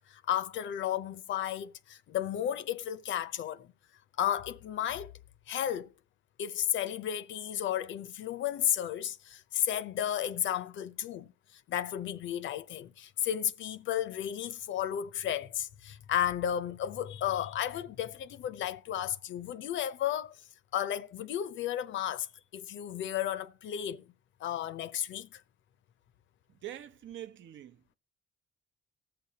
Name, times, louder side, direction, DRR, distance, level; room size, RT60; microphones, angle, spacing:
voice 1, 0.1-3.7 4.2-5.1 5.5-5.9 6.4-11.3 11.7-20.4 20.7-22.3 22.5-24.1 24.4-25.4, left 10 dB, 70° left, 0.6 m, -33 dB
voice 2, 26.5-28.0, right 12 dB, 70° right, 0.7 m, -45 dB
19.0 x 6.8 x 2.8 m
cardioid pair, 90°, 20 cm